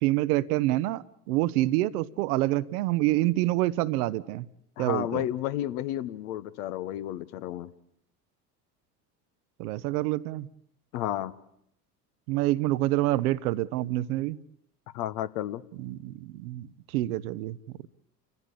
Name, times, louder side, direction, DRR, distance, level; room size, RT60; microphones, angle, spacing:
voice 1, 0.0-4.5 4.8-5.2 9.6-10.5 12.3-14.4 15.8-16.7 16.9-17.6, right 17 dB, 65° right, 16 dB, 1.0 m, -27 dB
voice 2, 4.8-7.7 10.9-11.3 14.9-15.6, left 13 dB, 65° left, 13 dB, 1.3 m, -32 dB
29.5 x 15.0 x 8.5 m, 0.74 s
figure-of-eight pair, 65°, 49 cm